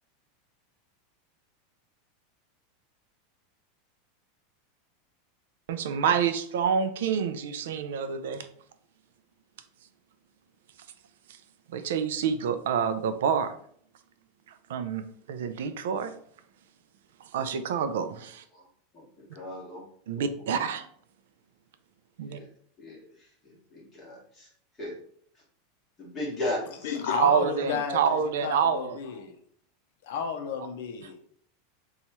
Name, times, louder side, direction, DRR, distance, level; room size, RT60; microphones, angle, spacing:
voice 1, 5.7-8.5 11.7-13.5 14.7-16.1 17.3-18.4 20.1-20.9 22.2-22.4 27.2-29.0 31.0-31.1, right 7 dB, 75° right, 10 dB, 0.3 m, -27 dB
voice 2, 18.9-19.9 20.1-20.2 22.2-22.5 22.8-24.5 24.8-24.9 26.0-27.0, left 1 dB, 10° left, -6 dB, 1.3 m, -37 dB
voice 3, 26.8-29.3 30.1-31.2, left 6 dB, 60° left, 4 dB, 0.5 m, -32 dB
3.0 x 2.3 x 4.1 m, 0.63 s
supercardioid pair, 175°, 0 cm